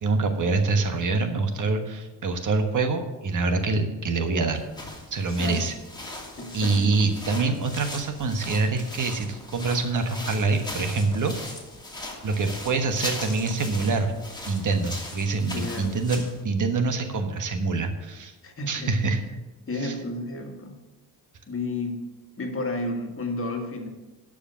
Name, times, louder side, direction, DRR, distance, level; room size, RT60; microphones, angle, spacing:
voice 1, 0.0-4.6 5.1-5.7 6.5-11.3 12.2-14.1 14.5-18.3 18.7-19.2 19.8-19.9, right 3 dB, 50° right, 7 dB, 1.3 m, -25 dB
sound 1, 4.6-16.4, left 1 dB, 10° left, 2.6 m, -39 dB
voice 2, 5.3-5.7 6.4-6.9 15.5-16.0 18.4-19.0 19.7-20.8 21.5-23.9, left 2 dB, 35° left, 3 dB, 1.9 m, -32 dB
11.5 x 5.1 x 6.9 m, 1.1 s
cardioid pair, 80°, 39 cm